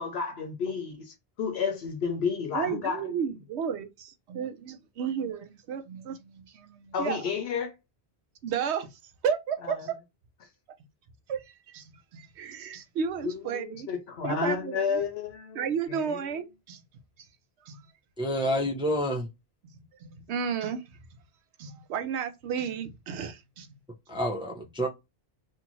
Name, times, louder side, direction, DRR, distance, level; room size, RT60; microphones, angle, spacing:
voice 1, 0.0-3.0 6.9-7.7 13.2-16.2, left 6 dB, 75° left, 0.8 m, -31 dB
voice 2, 2.5-7.3 8.4-8.9 9.2-10.0 11.3-13.9 14.2-15.0 15.5-16.8 17.6-17.9 19.6-19.7 20.0-20.8 21.6-23.7, right 7 dB, 90° right, 0.9 m, -33 dB
voice 3, 18.2-19.3 24.1-24.9, equal, 5° right, 0.4 m, -28 dB
2.7 x 2.5 x 2.9 m
omnidirectional pair, 1.1 m